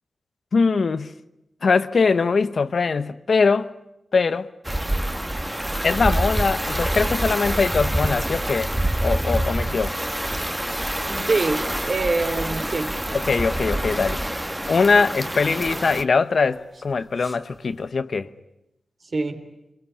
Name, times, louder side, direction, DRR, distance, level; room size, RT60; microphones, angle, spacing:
voice 1, 0.5-1.1 1.6-3.7 4.1-4.5 5.4-5.6 5.8-8.7 9.0-10.0 13.1-14.2 14.7-18.3, left 4 dB, 70° left, 1.0 m, -21 dB
sound 1, 4.6-16.0, right 1 dB, 10° right, 1.6 m, -26 dB
sound 2, 6.9-17.9, right 1 dB, 25° right, 5.6 m, -45 dB
voice 2, 11.3-12.9 19.1-19.5, right 3 dB, 60° right, 3.4 m, -24 dB
27.0 x 21.5 x 9.9 m
cardioid pair, 60°, 0 cm